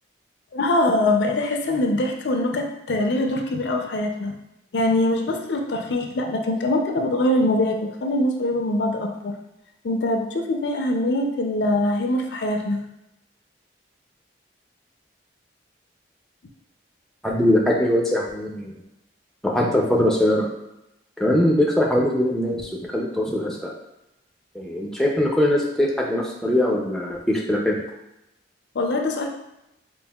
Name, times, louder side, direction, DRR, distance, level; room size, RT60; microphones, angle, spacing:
voice 1, 0.5-4.3 4.7-9.3 9.8-12.8 28.7-29.3, left 1 dB, 70° left, 3 dB, 0.4 m, -23 dB
voice 2, 17.2-18.7 19.4-20.5 21.2-23.7 24.5-27.7, left 1 dB, ahead, -2 dB, 0.4 m, -21 dB
5.3 x 2.4 x 2.3 m, 0.87 s
head